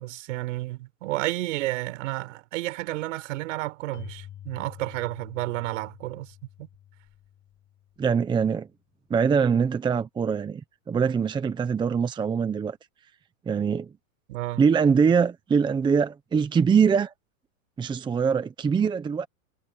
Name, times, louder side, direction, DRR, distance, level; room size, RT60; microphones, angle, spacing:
voice 1, 0.0-6.3 6.6-6.7 14.3-14.6, right 18 dB, 60° right, 5.5 m, -31 dB
Keyboard (musical), 3.9-8.4, left 11 dB, 25° left, 6.6 m, -47 dB
voice 2, 8.0-8.7 9.1-10.6 10.9-12.8 13.5-13.9 14.6-17.1 17.8-19.3, right 6 dB, 10° right, 0.9 m, -23 dB
supercardioid pair, 145°, 42 cm